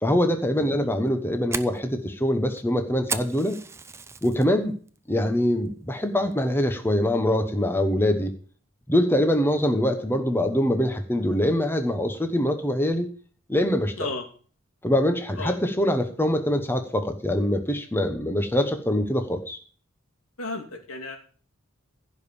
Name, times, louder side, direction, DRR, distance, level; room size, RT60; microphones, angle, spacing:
voice 1, 0.0-3.6 4.2-4.7 5.1-8.3 8.9-13.1 13.5-14.1 14.8-19.6, left 1 dB, 10° left, 6 dB, 1.1 m, -24 dB
Fire, 0.9-4.5 4.9-5.3 5.7-5.8 6.3-6.7, right 4 dB, 10° right, 0.6 m, -35 dB
voice 2, 20.4-21.2, left 3 dB, 80° left, 2 dB, 2.8 m, -33 dB
15.5 x 5.3 x 7.1 m, 0.42 s
head